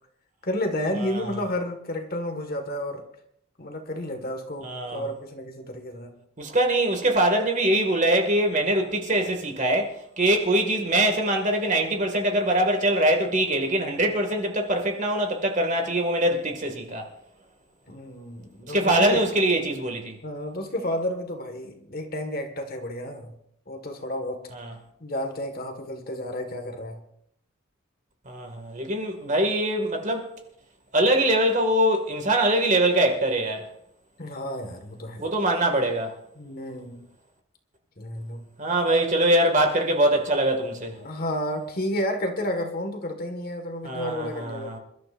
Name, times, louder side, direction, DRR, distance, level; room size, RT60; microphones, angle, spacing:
voice 1, 0.4-3.0 3.6-6.1 13.7-13.8 16.2-16.3 17.9-19.2 20.2-23.4 23.7-24.4 25.0-27.0 34.2-35.2 36.4-37.0 38.0-38.4 41.0-44.7, left 1 dB, 45° left, 1.8 m, -31 dB
voice 2, 4.6-5.0 6.4-17.0 18.7-20.2 24.5-24.7 28.3-30.3 30.9-33.6 35.2-36.1 38.6-41.0 43.8-44.8, right 1 dB, 35° right, 2.1 m, -23 dB
27.0 x 12.5 x 2.6 m
head